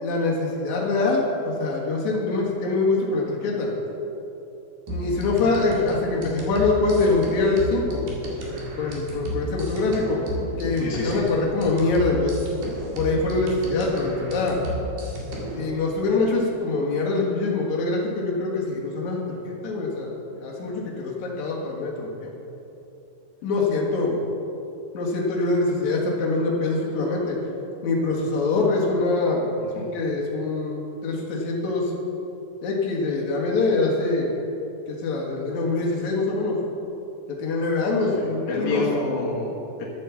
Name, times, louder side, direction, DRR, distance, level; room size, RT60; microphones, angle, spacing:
voice 1, 0.0-3.7 4.9-8.1 8.8-10.2 10.6-12.5 12.9-14.6 15.6-20.1 20.4-22.3 23.4-24.2 24.9-27.4 27.8-29.5 29.8-31.9 32.6-34.3 34.9-36.6 37.3-38.9, left 3 dB, 70° left, -3 dB, 1.8 m, -24 dB
sound 1, 4.9-15.7, equal, 55° right, 3.1 m, -33 dB
voice 2, 10.8-11.2 29.7-29.9 38.1-38.2 38.5-39.8, left 3 dB, 85° left, -3 dB, 1.6 m, -29 dB
12.0 x 8.6 x 7.1 m, 3.0 s
omnidirectional pair, 5.9 m